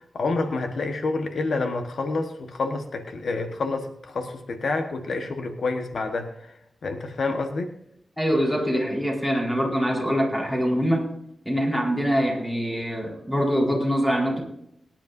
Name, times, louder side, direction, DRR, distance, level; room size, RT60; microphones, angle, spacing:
voice 1, 0.0-6.5 6.8-7.7, left 3 dB, 70° left, 5 dB, 1.2 m, -28 dB
voice 2, 8.2-11.0 11.4-14.4, equal, 10° left, -1 dB, 4.2 m, -24 dB
23.5 x 10.5 x 2.6 m, 0.77 s
wide cardioid pair, 105°, 0 cm